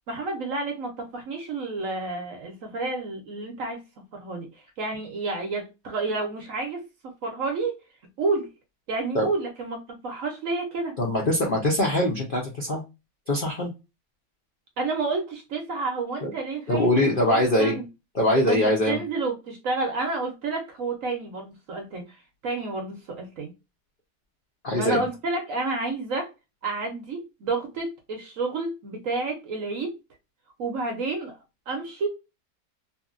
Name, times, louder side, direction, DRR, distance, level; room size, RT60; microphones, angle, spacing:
voice 1, 0.1-3.8 4.1-4.5 4.8-7.8 8.2-8.5 8.9-11.0 14.8-17.8 18.4-23.5 24.7-26.3 26.6-29.9 30.6-31.4 31.7-32.1, right 3 dB, 60° right, 0.9 m, -30 dB
voice 2, 11.0-12.8 13.3-13.7 16.2-16.3 16.7-17.8 18.2-19.0 24.6-25.0, left 1 dB, 55° left, 0.5 m, -22 dB
2.9 x 2.6 x 2.5 m
omnidirectional pair, 1.8 m